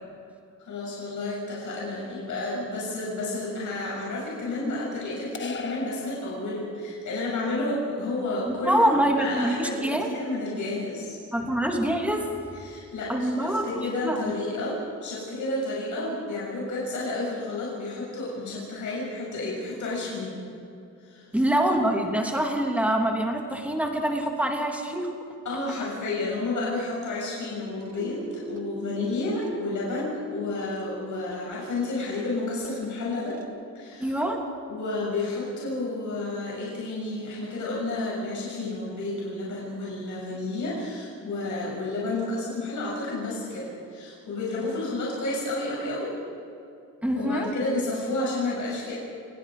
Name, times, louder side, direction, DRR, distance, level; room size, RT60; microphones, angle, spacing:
voice 1, 0.7-11.2 12.5-20.4 21.0-21.3 25.4-33.4 33.7-34.1 34.7-46.2 47.1-49.0, left 2 dB, 75° left, -5 dB, 7.1 m, -31 dB
sound 1, 5.3-7.0, left 4 dB, 40° left, 1.5 m, -38 dB
voice 2, 8.6-10.1 11.3-12.3 13.1-14.3 21.3-25.1 34.0-34.4 47.0-47.5, right 1 dB, 5° right, 1 dB, 3.0 m, -25 dB
sound 2, 27.5-33.4, right 4 dB, 55° right, 2.3 m, -43 dB
30.0 x 19.5 x 5.1 m, 2.7 s
wide cardioid pair, 150°, 30 cm